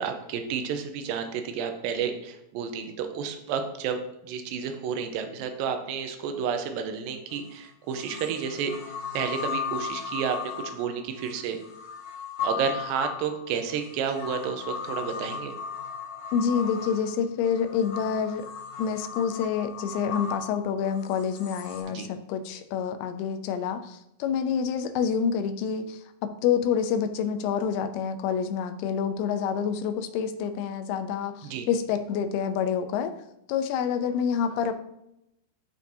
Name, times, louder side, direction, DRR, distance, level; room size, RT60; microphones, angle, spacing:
voice 1, 0.0-8.7 9.1-11.6 12.4-15.5 21.9-22.1 31.4-31.7, right 7 dB, 80° right, 6 dB, 2.3 m, -31 dB
sound 1, 7.3-7.4 7.9-21.8, left 6 dB, 65° left, 2.7 m, -36 dB
voice 2, 16.3-18.5 18.8-33.1 33.5-34.7, left 7 dB, 90° left, 9 dB, 2.7 m, -27 dB
13.0 x 4.5 x 2.7 m, 0.83 s
omnidirectional pair, 4.5 m